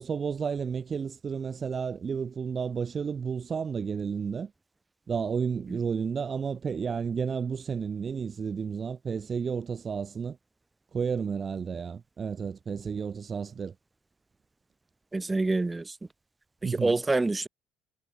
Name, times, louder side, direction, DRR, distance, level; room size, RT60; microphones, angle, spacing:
voice 1, 0.0-4.5 5.1-10.4 10.9-13.7 16.6-17.0, right 6 dB, 35° right, 0.5 m, -32 dB
voice 2, 15.1-15.9 16.6-17.5, right 2 dB, 15° right, 1.4 m, -27 dB
cardioid pair, 105°, 0 cm